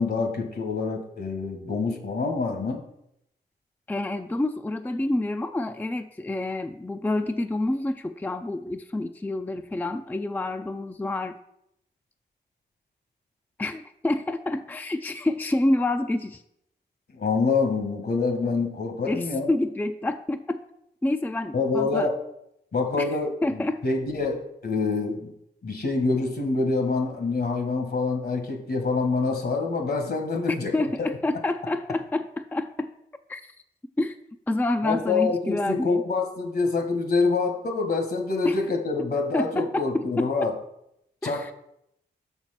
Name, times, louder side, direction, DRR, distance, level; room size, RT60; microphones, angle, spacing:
voice 1, 0.0-2.8 17.1-19.5 21.5-22.1 22.7-25.3 25.6-30.7 34.8-40.5 41.2-41.5, left 4 dB, 65° left, 4 dB, 1.5 m, -26 dB
voice 2, 3.9-11.4 13.6-16.4 19.1-20.6 21.0-22.1 23.0-23.1 23.4-23.8 30.7-32.9 33.3-33.5 34.0-34.2 34.5-36.0 38.4-38.6 39.0-39.1 39.3-40.3 41.2-41.5, left 2 dB, 10° left, 8 dB, 0.4 m, -28 dB
6.3 x 4.5 x 5.8 m, 0.77 s
cardioid pair, 50°, 18 cm